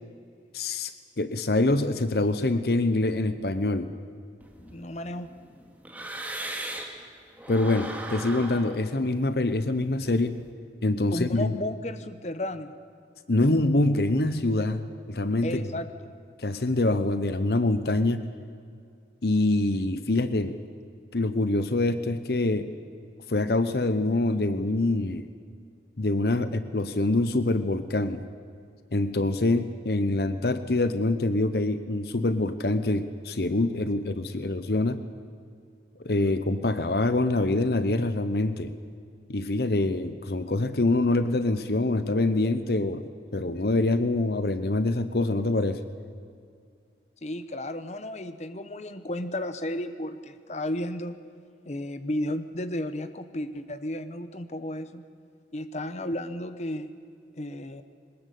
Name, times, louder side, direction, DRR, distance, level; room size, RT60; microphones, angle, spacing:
voice 1, 0.5-0.9 1.2-4.0 7.5-10.4 10.8-11.5 13.3-15.6 16.4-18.3 19.2-20.6 21.1-22.7 23.3-25.3 26.0-28.3 28.9-35.0 36.0-38.7 39.3-45.8, left 2 dB, 60° left, 11 dB, 0.9 m, -25 dB
sound 1, 4.4-7.0 7.4-10.4, right 1 dB, 10° right, 2.3 m, -39 dB
voice 2, 4.6-5.3 11.1-12.7 15.4-16.1 47.2-51.2 51.6-55.0 55.5-56.9 57.4-57.8, left 1 dB, 40° left, 11 dB, 1.0 m, -33 dB
22.0 x 20.0 x 8.4 m, 2.3 s
head